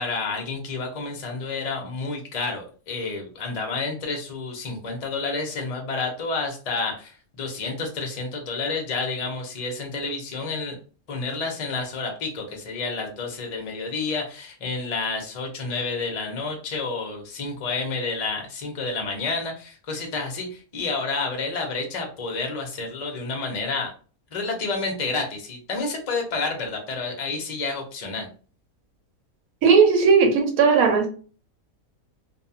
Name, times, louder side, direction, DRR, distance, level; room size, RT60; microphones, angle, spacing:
voice 1, 0.0-7.1 7.4-10.8 11.1-23.9 24.3-28.3, left 3 dB, 40° left, 0.5 m, -29 dB
voice 2, 29.6-31.1, right 5 dB, 70° right, 1.2 m, -17 dB
2.6 x 2.3 x 2.7 m
omnidirectional pair, 1.6 m